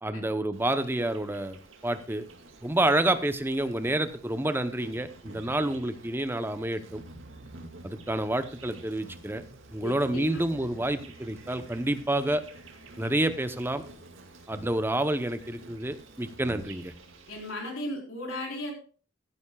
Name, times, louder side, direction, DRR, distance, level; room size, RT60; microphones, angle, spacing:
voice 1, 0.0-2.3 2.6-7.0 7.8-9.4 9.7-12.4 13.0-13.8 14.5-16.9, right 1 dB, 10° right, 10 dB, 0.7 m, -28 dB
Insect, 0.5-17.5, right 2 dB, 75° right, 2.1 m, -49 dB
voice 2, 9.8-10.8 17.3-18.7, left 1 dB, 90° left, 0 dB, 4.3 m, -36 dB
15.5 x 11.0 x 2.3 m, 0.39 s
head